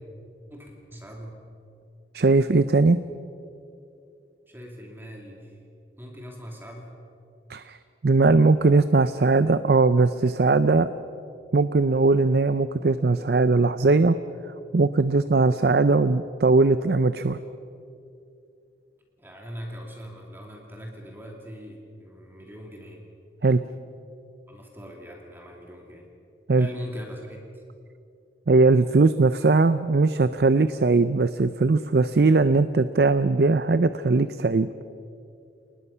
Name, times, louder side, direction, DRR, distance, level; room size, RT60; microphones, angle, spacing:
voice 1, 0.5-1.5 4.5-5.6 6.0-6.9 19.2-23.1 24.5-26.1 26.5-27.6, equal, 10° right, 0 dB, 2.6 m, -41 dB
voice 2, 2.1-3.0 7.5-7.8 8.0-10.9 11.5-14.2 14.7-17.4 23.4-23.6 26.5-26.7 28.5-34.7, right 3 dB, 60° right, 13 dB, 0.5 m, -20 dB
29.5 x 19.5 x 5.6 m, 2.6 s
head